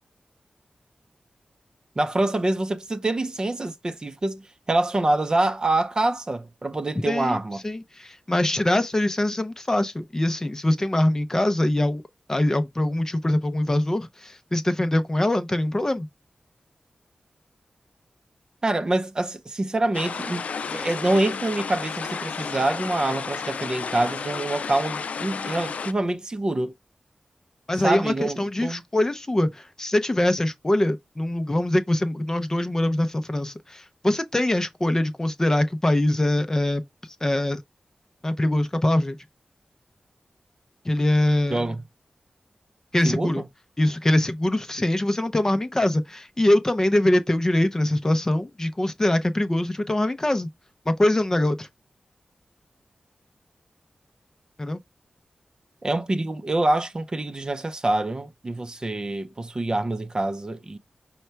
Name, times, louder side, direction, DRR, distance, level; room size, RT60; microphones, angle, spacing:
voice 1, 2.0-7.6 18.6-26.7 27.8-28.8 41.5-41.8 43.0-43.4 55.8-60.8, right 2 dB, 35° right, 0.5 m, -26 dB
voice 2, 7.1-7.4 7.6-12.0 12.3-16.1 27.7-36.8 37.2-37.6 38.2-39.2 40.8-41.7 42.9-43.4 43.8-50.5 50.9-51.7 54.6-54.8, left 1 dB, 25° left, 0.5 m, -23 dB
sound 1, 19.9-25.9, left 5 dB, 80° left, 0.3 m, -32 dB
5.4 x 2.1 x 4.5 m
wide cardioid pair, 95°, 2 cm